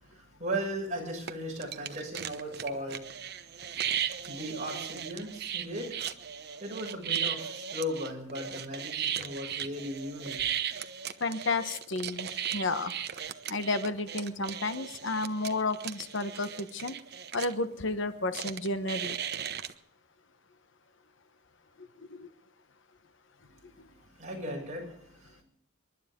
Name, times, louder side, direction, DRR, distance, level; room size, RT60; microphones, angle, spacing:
voice 1, 0.0-3.0 3.6-6.1 6.6-10.4 23.8-25.4, equal, 35° right, -1 dB, 6.9 m, -37 dB
sound 1, 1.3-1.4 1.6-17.5 18.3-19.7, right 9 dB, 50° right, 1.0 m, -36 dB
voice 2, 11.2-12.9 13.5-16.9 17.3-19.1 22.1-22.3, left 2 dB, 60° left, 10 dB, 1.2 m, -32 dB
28.0 x 12.0 x 3.8 m, 0.68 s
head